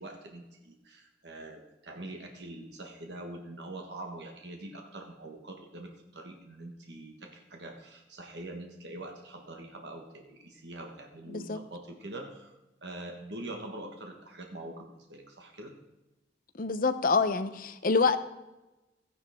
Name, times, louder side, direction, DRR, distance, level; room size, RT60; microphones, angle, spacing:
voice 1, 0.0-12.5 12.8-15.7, right 1 dB, 65° right, 3 dB, 1.5 m, -44 dB
voice 2, 16.6-18.2, left 4 dB, 50° left, 10 dB, 0.7 m, -26 dB
14.0 x 10.5 x 3.6 m, 1.0 s
head